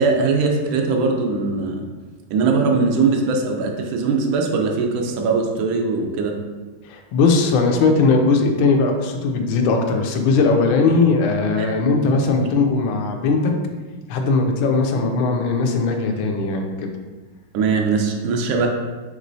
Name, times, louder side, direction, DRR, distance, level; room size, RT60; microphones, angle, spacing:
voice 1, 0.0-1.8 2.3-6.3 11.6-11.7 17.5-18.7, right 4 dB, 80° right, 2 dB, 1.4 m, -20 dB
voice 2, 6.8-13.5 14.1-16.9, left 4 dB, 80° left, 3 dB, 1.4 m, -19 dB
5.3 x 3.1 x 2.6 m, 1.3 s
omnidirectional pair, 2.2 m